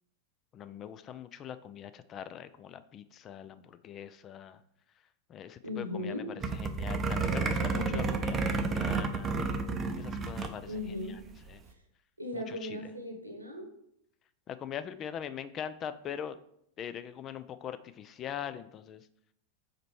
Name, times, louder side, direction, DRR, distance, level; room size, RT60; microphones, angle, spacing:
voice 1, 0.5-4.6 5.3-6.1 6.6-9.4 9.9-10.7 11.5-11.6 12.3-12.9 14.5-16.4 16.8-19.0, left 9 dB, 30° left, 12 dB, 0.3 m, -42 dB
voice 2, 5.6-6.3 7.7-8.2 10.7-11.2 12.2-13.7, left 1 dB, 85° right, 3 dB, 1.1 m, -37 dB
sound 1, 6.4-10.6 10.9-11.0 11.2-11.5, right 4 dB, 25° right, 0.6 m, -31 dB
5.0 x 4.4 x 4.6 m, 0.74 s
figure-of-eight pair, 90°, 0 cm